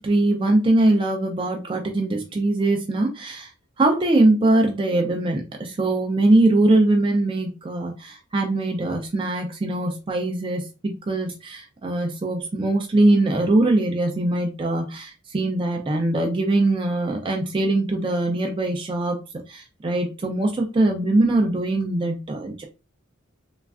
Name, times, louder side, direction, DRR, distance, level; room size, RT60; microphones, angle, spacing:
voice 1, 0.0-3.5 3.8-19.2 19.5-22.6, right 2 dB, 25° right, 2 dB, 0.4 m, -22 dB
3.1 x 2.3 x 2.3 m, 0.29 s
head